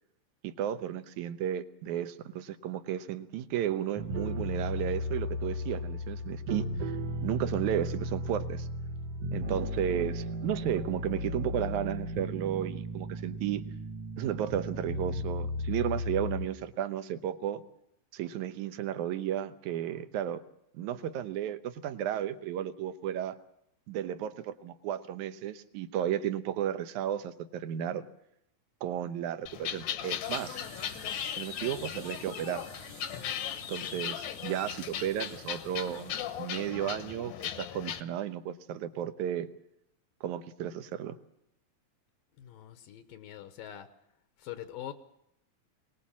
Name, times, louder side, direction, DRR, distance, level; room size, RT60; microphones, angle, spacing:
voice 1, 0.4-6.9 7.2-8.7 9.3-13.6 14.2-17.6 18.1-20.4 20.7-23.4 23.9-28.0 28.8-30.6 31.4-32.7 33.7-39.5 40.2-41.2, right 10 dB, 70° right, 10 dB, 2.1 m, -33 dB
sound 1, 4.0-16.5, left 1 dB, 55° right, 1.9 m, -35 dB
sound 2, 29.5-38.0, left 9 dB, 65° left, 1.9 m, -37 dB
sound 3, 30.2-36.7, right 2 dB, 30° right, 1.6 m, -52 dB
voice 2, 42.4-43.9 44.4-44.9, left 11 dB, 80° left, 9 dB, 2.8 m, -43 dB
24.0 x 19.0 x 7.3 m, 0.79 s
omnidirectional pair, 4.0 m